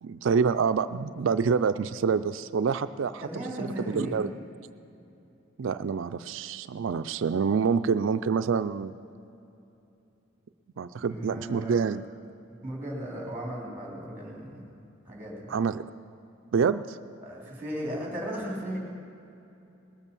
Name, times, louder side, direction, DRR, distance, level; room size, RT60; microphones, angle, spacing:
voice 1, 0.0-3.2 3.6-4.3 5.6-8.9 10.8-12.0 15.5-15.8 16.5-17.0, right 6 dB, 65° right, 12 dB, 0.4 m, -27 dB
voice 2, 3.2-4.2 11.0-11.7 12.6-14.7 15.0-15.5 17.2-18.8, equal, 10° right, -2 dB, 3.2 m, -36 dB
19.5 x 8.3 x 7.0 m, 2.8 s
head